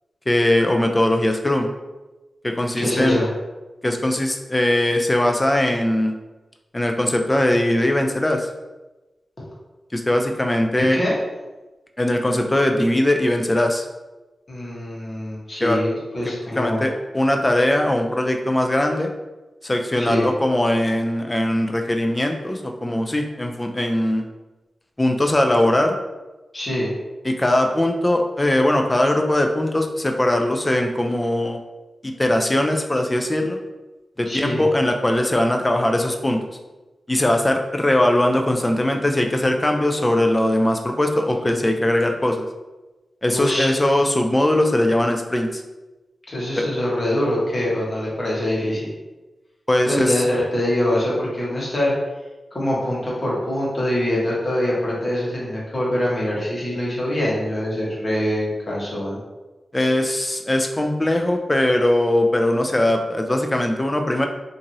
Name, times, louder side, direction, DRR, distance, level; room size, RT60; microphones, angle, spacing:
voice 1, 0.3-1.7 2.4-3.2 3.8-6.1 6.7-8.5 9.9-11.0 12.0-13.8 15.6-15.8 16.5-19.1 19.6-24.3 25.0-26.0 27.2-31.6 32.0-33.6 34.2-36.4 37.1-42.5 43.2-45.6 46.6-46.7 49.7-50.1 59.7-64.3, left 1 dB, 20° left, 4 dB, 0.3 m, -20 dB
voice 2, 2.7-3.3 9.4-9.5 10.7-11.1 14.5-16.9 20.0-20.3 26.5-26.9 34.3-34.6 43.3-43.7 46.3-48.9 49.9-51.9 52.5-59.2, left 1 dB, 40° left, -6 dB, 1.0 m, -24 dB
2.9 x 2.5 x 2.6 m, 1.1 s
wide cardioid pair, 105°, 0 cm